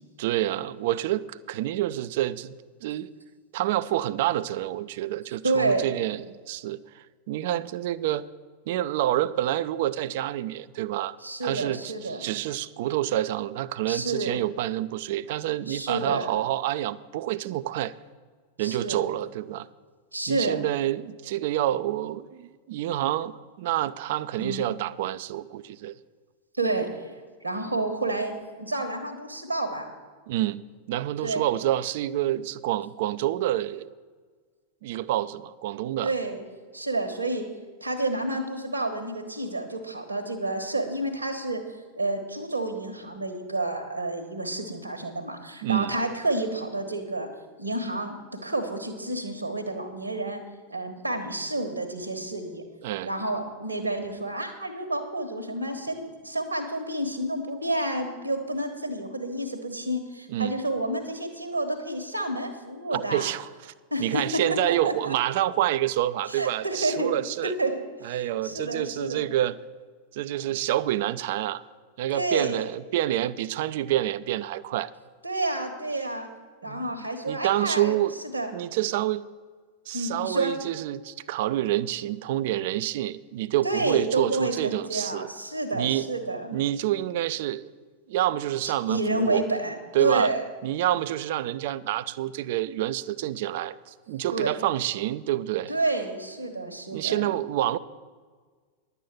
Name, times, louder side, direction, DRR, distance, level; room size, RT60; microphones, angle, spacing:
voice 1, 0.2-2.6 2.8-3.1 3.5-8.3 8.7-11.2 11.4-17.9 18.6-19.7 20.3-25.9 30.3-33.9 34.8-36.1 45.6-45.9 52.8-53.1 60.3-60.6 62.9-63.7 64.0-67.5 68.0-69.6 70.1-71.6 72.0-74.9 76.6-76.9 77.3-78.1 78.5-79.3 79.9-85.3 85.7-86.1 86.5-87.7 88.1-89.4 89.9-90.3 90.6-95.7 96.9-97.8, right 13 dB, 50° right, 16 dB, 0.4 m, -28 dB
voice 2, 5.4-6.0 11.2-12.2 13.9-14.4 15.7-16.3 18.6-19.1 20.1-20.6 24.4-24.6 26.6-27.2 27.4-29.9 31.2-31.5 36.0-36.4 36.7-37.5 37.8-41.6 42.0-47.3 47.6-50.4 50.7-52.6 53.1-63.3 63.9-64.4 64.7-65.1 66.3-67.1 67.4-67.7 68.0-69.3 72.1-72.7 75.2-76.3 76.6-78.0 78.3-78.5 79.9-80.5 83.6-86.5 88.6-90.4 94.3-94.6 95.7-97.3, right 2 dB, 80° right, 4 dB, 1.3 m, -29 dB
11.0 x 8.1 x 7.2 m, 1.5 s
figure-of-eight pair, 90°, 0 cm